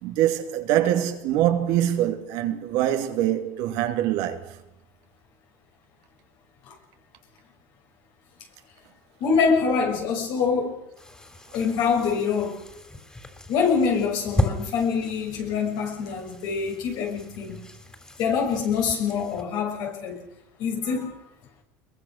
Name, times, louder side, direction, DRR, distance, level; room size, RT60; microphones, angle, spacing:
voice 1, 0.0-4.6, right 12 dB, 70° right, 2.6 m, -24 dB
voice 2, 9.2-10.8 11.5-12.5 13.5-17.6 18.2-20.2 20.6-21.2, left 5 dB, 65° left, 6.5 m, -25 dB
sound 1, 11.0-19.4, left 1 dB, 10° left, 3.7 m, -35 dB
22.0 x 22.0 x 6.6 m
supercardioid pair, 95°, 8 cm